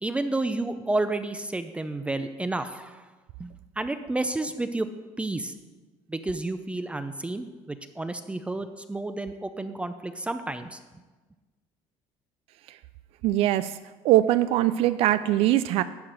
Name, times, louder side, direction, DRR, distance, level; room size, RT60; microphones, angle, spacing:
voice 1, 0.0-3.0 3.4-3.5 3.8-4.9 5.2-5.5 6.1-10.8, right 2 dB, 10° right, 9 dB, 0.5 m, -30 dB
voice 2, 13.2-13.8 14.0-15.8, right 14 dB, 70° right, 13 dB, 0.4 m, -22 dB
11.5 x 4.0 x 7.6 m, 1.3 s
cardioid pair, 115°, 11 cm